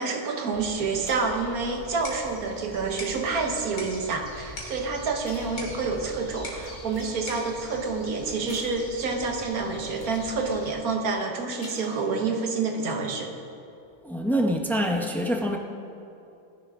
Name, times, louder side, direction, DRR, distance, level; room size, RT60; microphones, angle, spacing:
voice 1, 0.0-13.3, right 4 dB, 60° right, 3 dB, 1.6 m, -28 dB
sound 1, 0.5-10.7, left 1 dB, 20° left, 1.6 m, -44 dB
sound 2, 1.0-3.9 4.7-4.8 5.2-6.1 6.6-7.3 8.5-9.6 9.9-10.3 11.4-12.4 12.7-12.9, left 1 dB, 35° left, 3.2 m, -50 dB
sound 3, 1.7-8.7, left 1 dB, 75° left, 3.0 m, -44 dB
voice 2, 14.0-15.6, equal, ahead, 2 dB, 0.4 m, -25 dB
18.5 x 10.5 x 3.7 m, 2.7 s
omnidirectional pair, 1.8 m